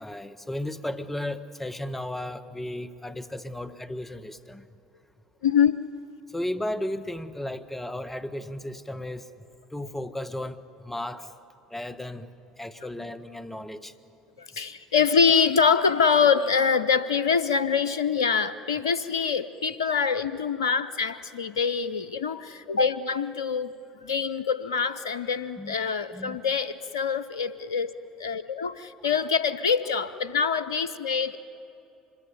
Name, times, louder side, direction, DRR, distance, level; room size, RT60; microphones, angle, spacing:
voice 1, 0.0-4.7 6.3-9.3 9.7-11.3 11.7-12.3 12.6-13.9 25.6-25.7 26.1-26.4, left 1 dB, 10° left, 11 dB, 1.5 m, -34 dB
voice 2, 5.4-5.9 14.4-23.7 24.0-27.9 28.2-31.4, left 6 dB, 85° left, 15 dB, 0.6 m, -25 dB
25.5 x 21.5 x 9.8 m, 2.7 s
hypercardioid pair, 70°, 2 cm